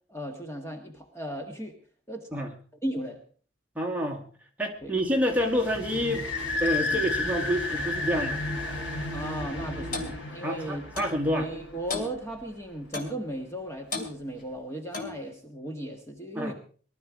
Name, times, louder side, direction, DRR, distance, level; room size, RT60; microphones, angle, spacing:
voice 1, 0.1-1.7 2.1-2.3 2.8-3.2 4.8-4.9 6.8-7.0 9.1-10.8 11.3-16.5, right 1 dB, 15° left, 3 dB, 1.5 m, -36 dB
voice 2, 3.8-4.3 4.6-6.3 6.6-8.4 10.4-11.5 16.4-16.5, equal, 10° right, 2 dB, 1.9 m, -28 dB
sound 1, 4.8-10.2, right 1 dB, 40° right, 1.5 m, -41 dB
sound 2, 5.3-12.6, left 2 dB, 90° left, 3.5 m, -33 dB
Clock, 9.9-10.1 11.0-11.2 11.9-12.1 12.9-13.2 13.9-14.1 14.9-15.2, left 3 dB, 45° left, 2.5 m, -34 dB
19.5 x 12.0 x 4.7 m, 0.43 s
head